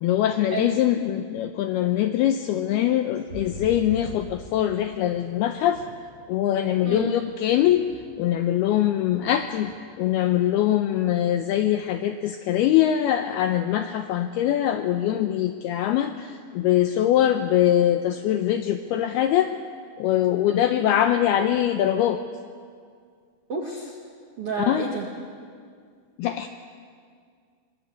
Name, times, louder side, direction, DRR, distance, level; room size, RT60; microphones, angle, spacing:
voice 1, 0.0-5.8 6.3-7.8 8.2-9.7 10.0-19.5 20.0-22.2 24.7-24.9 26.2-26.5, left 11 dB, 80° left, 8 dB, 2.3 m, -23 dB
sound 1, 3.3-7.3 7.6-8.7 8.9-9.7 10.1-10.2, right 2 dB, 20° right, 5.2 m, -43 dB
voice 2, 6.8-7.1 23.5-24.0 24.4-25.1 25.5-25.7, right 4 dB, 55° right, 0 dB, 1.6 m, -30 dB
23.0 x 21.5 x 8.4 m, 2.1 s
omnidirectional pair, 5.3 m